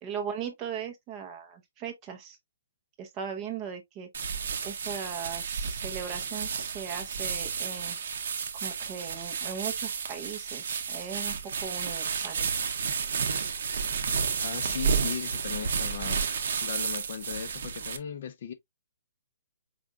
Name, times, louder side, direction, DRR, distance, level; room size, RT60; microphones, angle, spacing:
voice 1, 0.0-2.4 3.0-4.1 4.6-8.0 8.5-12.5, right 7 dB, 15° right, 0.7 m, -38 dB
sound 1, 4.1-18.0, right 6 dB, 50° right, 0.7 m, -31 dB
voice 2, 14.4-16.3 16.6-18.5, left 7 dB, 40° left, 0.5 m, -37 dB
4.8 x 3.4 x 2.3 m
hypercardioid pair, 180°, 0 cm